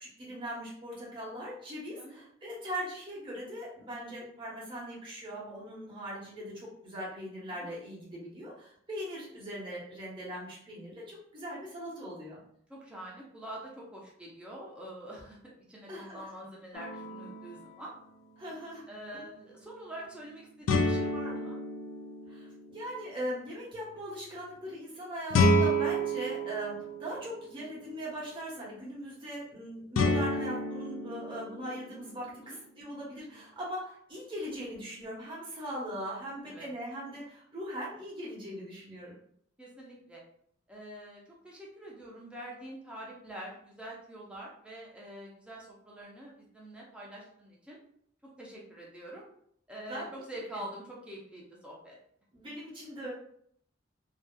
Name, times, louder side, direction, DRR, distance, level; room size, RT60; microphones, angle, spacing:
voice 1, 0.0-12.4 15.9-16.2 18.4-18.8 19.1-19.3 22.3-39.1 49.8-50.1 50.5-50.6 52.3-53.1, equal, 25° right, -7 dB, 1.0 m, -40 dB
voice 2, 12.7-17.9 18.9-21.6 32.4-32.6 36.4-36.7 39.6-40.2 40.7-47.8 48.4-49.3 49.7-51.9, right 1 dB, 5° right, -4 dB, 0.6 m, -45 dB
sound 1, 16.7-17.7 20.7-22.8 25.3-27.5 30.0-32.1, left 1 dB, 80° left, 0.3 m, -29 dB
2.6 x 2.3 x 2.3 m, 0.65 s
head